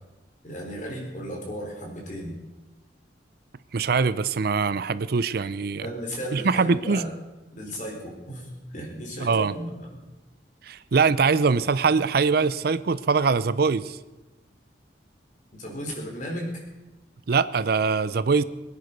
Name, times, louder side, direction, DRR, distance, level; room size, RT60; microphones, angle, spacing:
voice 1, 0.4-2.3 5.7-7.1 7.5-10.0 15.6-16.6, equal, 45° left, 0 dB, 4.2 m, -35 dB
voice 2, 3.7-5.8 6.3-7.0 9.2-9.5 10.6-14.0 17.3-18.4, right 5 dB, 55° right, 15 dB, 0.5 m, -23 dB
23.0 x 9.6 x 5.3 m, 1.1 s
head